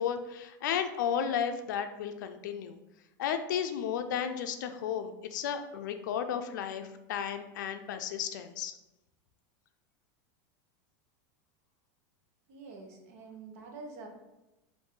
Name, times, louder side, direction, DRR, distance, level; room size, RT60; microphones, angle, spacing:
voice 1, 0.0-2.8 3.2-8.7, left 8 dB, 80° left, 7 dB, 0.5 m, -33 dB
voice 2, 12.5-14.1, right 3 dB, 55° right, 1 dB, 0.9 m, -46 dB
5.3 x 2.6 x 3.7 m, 0.96 s
supercardioid pair, 180°, 10 cm